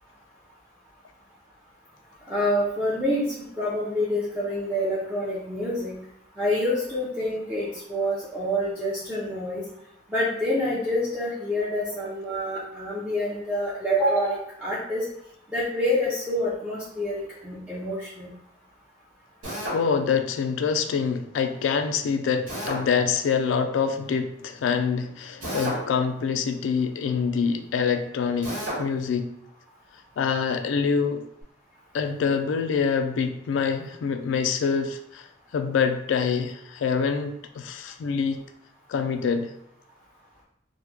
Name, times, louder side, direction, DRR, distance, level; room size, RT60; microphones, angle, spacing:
voice 1, 2.3-6.0 6.4-9.6 10.1-15.0 15.5-18.3, left 1 dB, 5° right, -9 dB, 0.5 m, -27 dB
Drill, 19.4-19.8 22.5-22.8 25.4-25.9 28.4-28.8, equal, 90° right, 1.1 m, -30 dB
voice 2, 19.7-29.3 30.2-31.2 31.9-35.3 35.5-38.4 38.9-39.5, left 6 dB, 80° left, 7 dB, 0.3 m, -25 dB
3.0 x 2.1 x 3.4 m, 0.74 s
head